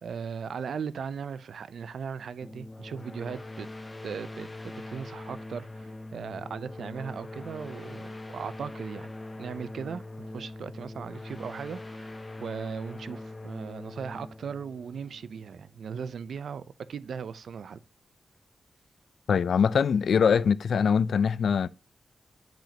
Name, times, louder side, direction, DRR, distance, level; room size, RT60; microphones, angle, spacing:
voice 1, 0.0-3.7 4.0-9.1 9.4-12.1 12.4-16.6 16.9-17.8, right 6 dB, 80° right, 0.5 m, -38 dB
sound 1, 2.4-15.8, left 2 dB, 20° left, 0.7 m, -42 dB
voice 2, 19.3-21.7, left 6 dB, 75° left, 0.3 m, -23 dB
8.9 x 5.1 x 2.8 m
wide cardioid pair, 145°, 0 cm